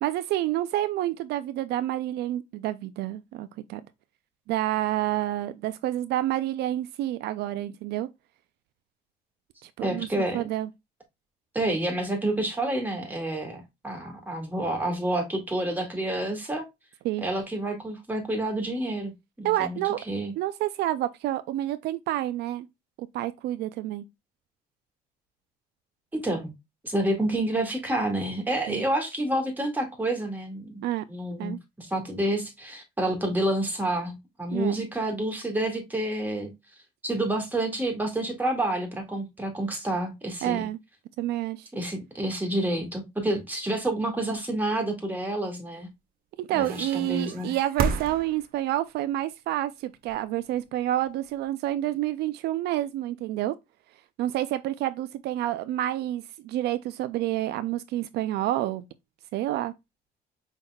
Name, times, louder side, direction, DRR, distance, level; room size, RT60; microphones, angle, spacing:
voice 1, 0.0-3.8 4.5-8.1 9.6-10.7 17.0-17.3 19.4-20.0 20.4-22.7 23.0-24.0 28.7-28.8 30.8-31.0 31.4-31.6 34.5-34.7 40.4-40.8 41.2-41.7 46.4-53.5 54.2-58.8 59.3-59.7, right 14 dB, 75° right, 0.4 m, -29 dB
voice 2, 9.8-10.4 11.5-16.6 17.2-19.8 20.1-20.3 26.1-26.5 26.8-36.5 37.0-40.6 41.7-45.9 46.5-47.5, right 1 dB, 10° right, 2.0 m, -29 dB
sound 1, 46.6-48.8 50.0-51.4, right 5 dB, 60° right, 0.8 m, -32 dB
5.5 x 3.5 x 2.3 m
cardioid pair, 110°, 17 cm